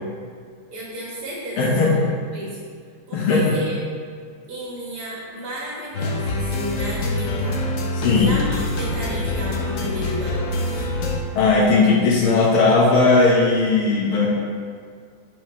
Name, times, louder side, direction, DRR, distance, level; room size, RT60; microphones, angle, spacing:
voice 1, 0.7-2.0 2.3-2.6 3.1-3.7 4.5-7.7 8.1-10.9, equal, 80° right, -6 dB, 2.6 m, -32 dB
voice 2, 1.6-2.1 3.1-3.4 7.9-8.3 11.4-14.3, left 3 dB, 80° left, -5 dB, 2.0 m, -17 dB
sound 1, 5.9-11.2, left 2 dB, 60° left, 0.9 m, -25 dB
10.5 x 5.5 x 3.2 m, 2.1 s
omnidirectional pair, 2.4 m